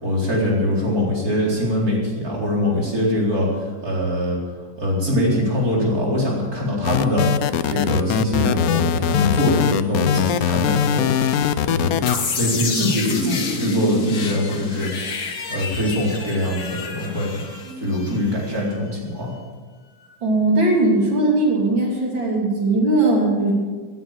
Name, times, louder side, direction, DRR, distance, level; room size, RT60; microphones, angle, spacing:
voice 1, 0.0-4.4 4.8-11.1 11.6-12.0 12.4-14.9 15.5-17.3 17.8-19.3, left 1 dB, 50° right, -3 dB, 4.6 m, -22 dB
sound 1, 6.8-12.2, left 8 dB, 65° left, 1.0 m, -21 dB
sound 2, 12.1-18.8, left 3 dB, 80° left, 2.5 m, -28 dB
voice 2, 20.2-23.5, right 2 dB, 80° right, -1 dB, 3.9 m, -19 dB
18.5 x 9.7 x 7.4 m, 1.4 s
omnidirectional pair, 2.0 m